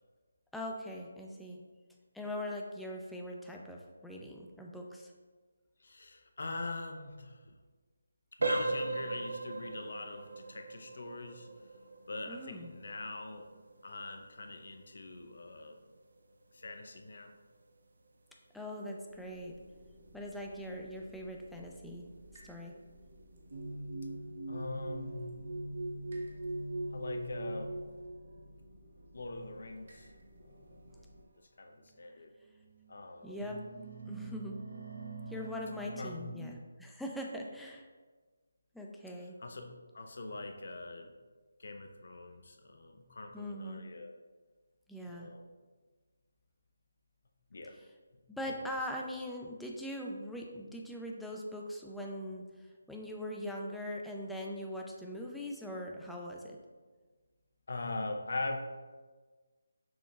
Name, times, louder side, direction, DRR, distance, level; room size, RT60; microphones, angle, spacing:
voice 1, 0.5-1.6 2.1-5.1 12.3-12.7 18.5-19.6 20.1-22.1 22.4-22.7 33.2-33.6 34.1-34.6 35.3-37.9 38.7-39.4 43.3-43.8 44.9-45.3 47.7-47.9 48.3-56.6, left 1 dB, ahead, -1 dB, 0.4 m, -41 dB
voice 2, 5.8-7.5 8.4-11.5 12.1-13.5 13.8-15.8 16.5-17.3 24.5-25.3 26.9-27.8 29.1-30.1 30.4-30.8 31.6-32.3 32.9-33.4 36.0-36.2 39.4-41.1 41.6-44.1 45.1-45.4 47.5-47.8 48.5-48.6 57.7-58.6, left 2 dB, 65° left, 5 dB, 0.5 m, -42 dB
sound 1, 8.4-19.1 19.4-19.7 20.2-20.3 20.8-21.0, right 2 dB, 70° right, 0.5 m, -40 dB
sound 2, 19.1-31.2, equal, 50° right, 0.9 m, -58 dB
sound 3, 23.5-28.7 29.5-29.8 30.9-31.0 31.7-31.8 32.5-33.0 33.2-36.5, right 2 dB, 85° right, 0.9 m, -42 dB
6.1 x 3.6 x 2.4 m, 1.4 s
figure-of-eight pair, 155°, 0 cm